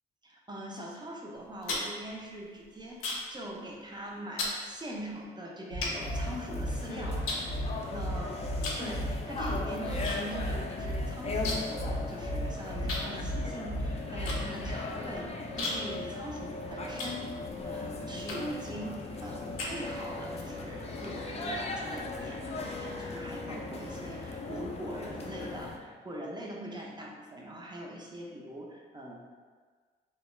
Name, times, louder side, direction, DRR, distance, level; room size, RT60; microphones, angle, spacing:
voice 1, 0.2-7.3 7.9-8.4 8.8-17.3 17.7-29.2, right 1 dB, 20° right, -2 dB, 0.5 m, -42 dB
sound 1, 1.3-3.4 3.7-4.0 4.4-4.6 5.2-5.3 5.8-6.8 7.2-8.1 8.6-8.9 9.2-10.2 10.4-10.5 10.8-11.8 12.1-12.2 12.9-17.6 18.2-18.7 19.1-20.2, left 2 dB, 85° left, 0.5 m, -37 dB
sound 2, 5.7-14.7, equal, 75° right, 0.7 m, -35 dB
sound 3, 5.8-25.8, left 3 dB, 30° left, 0.4 m, -38 dB
2.3 x 2.0 x 3.0 m, 1.5 s
supercardioid pair, 65°, 21 cm